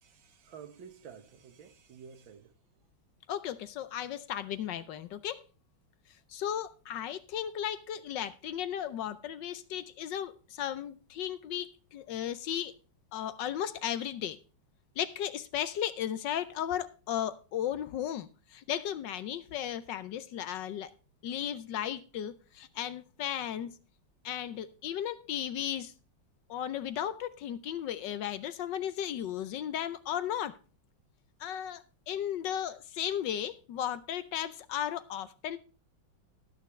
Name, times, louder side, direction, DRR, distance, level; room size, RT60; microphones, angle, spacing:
voice 1, 0.0-2.5, right 7 dB, 75° right, 1.9 m, -51 dB
voice 2, 3.3-5.4 6.3-12.7 13.1-14.4 15.0-20.9 21.2-23.8 24.2-25.9 26.5-30.6 31.4-35.6, left 10 dB, 70° left, 1.3 m, -35 dB
19.5 x 6.8 x 3.1 m
omnidirectional pair, 2.2 m